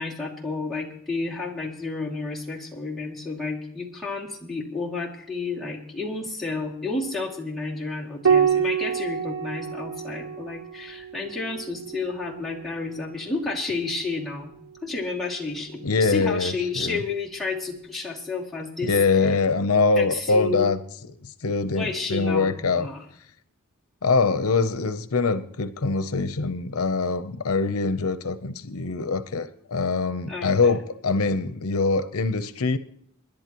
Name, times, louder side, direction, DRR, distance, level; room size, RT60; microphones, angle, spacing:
voice 1, 0.0-14.5 14.8-19.0 20.0-20.7 21.7-23.1 30.3-30.5, left 3 dB, ahead, -1 dB, 2.3 m, -31 dB
Piano, 8.2-13.1 14.7-15.5, right 7 dB, 70° right, 0.8 m, -27 dB
voice 2, 15.8-17.0 18.8-20.8 21.4-22.9 24.0-32.8, left 4 dB, 80° left, 12 dB, 0.8 m, -23 dB
26.5 x 11.0 x 3.0 m, 0.71 s
head